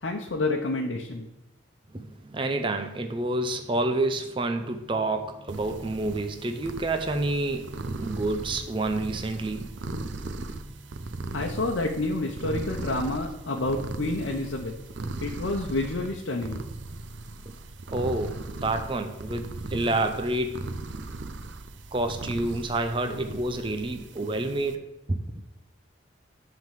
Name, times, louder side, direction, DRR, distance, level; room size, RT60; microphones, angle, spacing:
voice 1, 0.0-1.3 11.3-14.7 15.2-16.6, left 2 dB, 85° left, 0.9 m, -29 dB
voice 2, 1.9-10.2 17.9-20.7 21.9-25.2, right 2 dB, 25° right, 0.6 m, -29 dB
sound 1, 5.5-24.7, right 2 dB, 75° right, 0.7 m, -38 dB
10.5 x 3.8 x 7.4 m
head